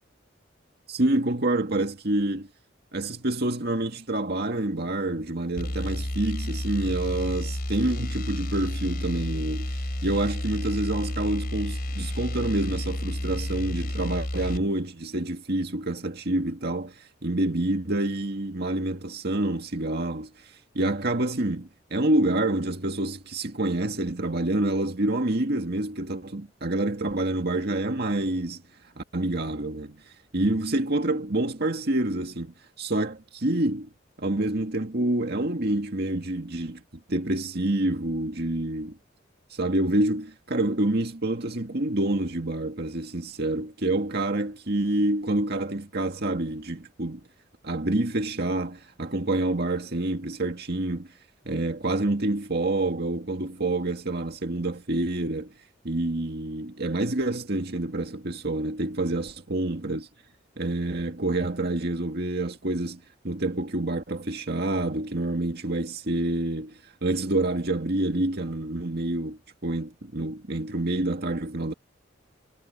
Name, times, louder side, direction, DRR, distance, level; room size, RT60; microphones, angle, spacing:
voice 1, 0.9-2.5 2.9-28.6 29.0-30.0 30.3-33.9 34.2-36.8 37.1-39.0 39.5-47.2 47.6-51.1 51.5-55.5 55.8-60.1 60.6-71.7, right 2 dB, 55° right, 2.0 m, -27 dB
sound 1, 5.6-14.7, left 1 dB, 50° left, 3.5 m, -31 dB
head